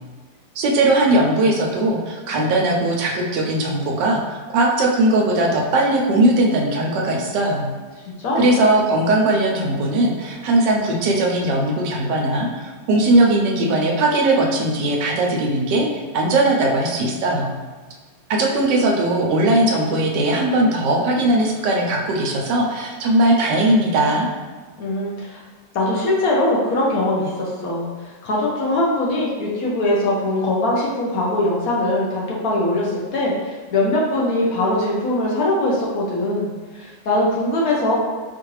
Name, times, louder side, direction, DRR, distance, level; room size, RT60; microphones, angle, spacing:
voice 1, 0.6-7.7 8.4-15.9 16.1-17.5 18.3-24.3, right 1 dB, 85° right, -1 dB, 1.3 m, -19 dB
voice 2, 24.8-25.4 25.7-27.9 28.2-37.9, left 1 dB, 60° left, -4 dB, 1.1 m, -21 dB
4.6 x 2.5 x 3.1 m, 1.4 s
omnidirectional pair, 1.8 m